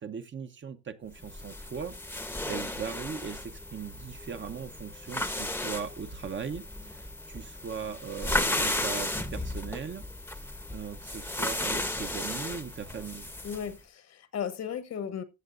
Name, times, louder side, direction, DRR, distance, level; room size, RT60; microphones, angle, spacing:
voice 1, 0.0-2.0 2.4-7.0 7.3-10.0 10.7-13.3, right 6 dB, 40° right, 0.8 m, -39 dB
sound 1, 1.2-13.7, left 1 dB, 5° left, 0.8 m, -34 dB
voice 2, 13.4-15.2, left 8 dB, 60° left, 1.1 m, -35 dB
14.5 x 7.3 x 2.5 m
cardioid pair, 90°, 30 cm